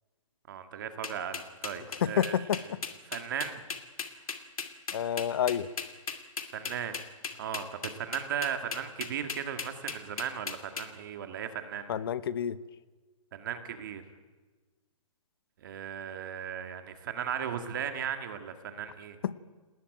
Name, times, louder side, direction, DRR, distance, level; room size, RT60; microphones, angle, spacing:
voice 1, 0.5-2.4 3.1-3.6 6.5-7.0 7.4-12.0 13.3-14.0 15.6-19.2, right 8 dB, 35° right, 8 dB, 2.0 m, -36 dB
sound 1, 1.0-10.8, left 5 dB, 80° left, 2.7 m, -37 dB
voice 2, 2.0-2.8 4.9-5.7 11.9-12.6 19.2-19.4, left 9 dB, 45° left, 16 dB, 1.0 m, -29 dB
28.0 x 19.5 x 9.2 m, 1.3 s
hypercardioid pair, 170°, 18 cm